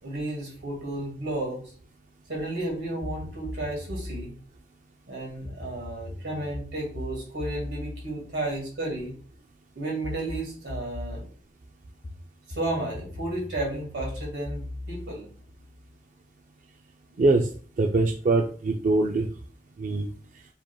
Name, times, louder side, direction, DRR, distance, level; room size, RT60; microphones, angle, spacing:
voice 1, 0.0-1.6 2.3-4.3 5.1-9.1 9.8-11.3 12.5-15.3, right 2 dB, 85° right, -1 dB, 2.0 m, -33 dB
sound 1, 3.0-4.3 5.4-9.2 10.0-11.3 12.0-16.0, left 1 dB, 30° left, 0.3 m, -39 dB
voice 2, 17.2-17.5 17.8-19.3 19.8-20.1, right 2 dB, 45° right, 3 dB, 0.4 m, -23 dB
4.9 x 3.5 x 2.3 m, 0.42 s
head